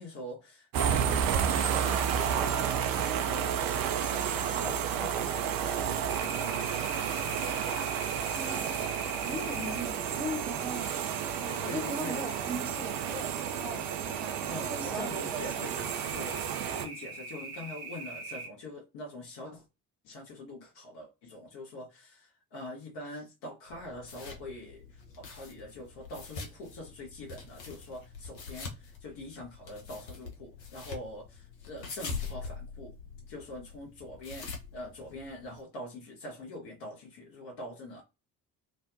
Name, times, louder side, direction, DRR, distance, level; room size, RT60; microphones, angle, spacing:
voice 1, 0.0-6.7 11.6-12.2 14.5-19.6 20.0-32.9 33.3-38.0, left 1 dB, 55° left, 0.9 m, -44 dB
sound 1, 0.7-16.9, right 8 dB, 45° right, 0.4 m, -31 dB
sound 2, 6.1-18.5, right 3 dB, 65° right, 0.8 m, -43 dB
voice 2, 8.3-8.8 9.2-10.9 11.4-14.4 14.7-15.7, right 1 dB, 5° right, 0.6 m, -39 dB
sound 3, 23.7-35.6, left 4 dB, 80° left, 0.6 m, -44 dB
2.5 x 2.1 x 2.4 m
figure-of-eight pair, 40°, 49 cm